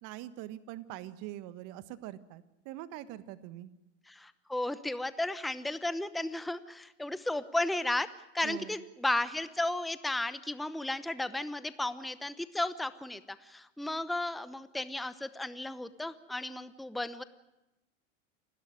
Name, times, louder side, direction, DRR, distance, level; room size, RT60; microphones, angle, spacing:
voice 1, 0.0-3.7 8.4-8.8, right 14 dB, 50° right, 14 dB, 1.5 m, -43 dB
voice 2, 4.1-8.1 8.3-17.2, left 2 dB, ahead, 14 dB, 0.8 m, -34 dB
28.5 x 12.5 x 9.9 m, 0.99 s
hypercardioid pair, 85°, 39 cm